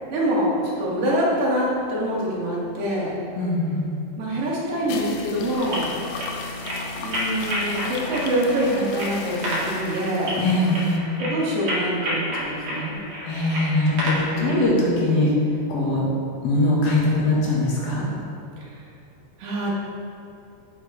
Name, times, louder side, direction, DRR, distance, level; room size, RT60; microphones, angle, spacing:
voice 1, 0.1-3.1 4.2-5.9 7.0-10.4 11.2-13.0 14.3-14.8 19.4-19.7, right 1 dB, 85° right, -6 dB, 4.0 m, -25 dB
voice 2, 3.4-3.9 10.4-11.0 13.3-15.3 15.7-16.0 16.4-18.0, left 2 dB, 65° left, -5 dB, 3.0 m, -21 dB
sound 1, 4.7-11.0, left 4 dB, 85° left, 2.6 m, -35 dB
sound 2, 5.5-14.7, equal, 40° right, 2.1 m, -31 dB
8.7 x 8.7 x 3.2 m, 2.6 s
omnidirectional pair, 4.8 m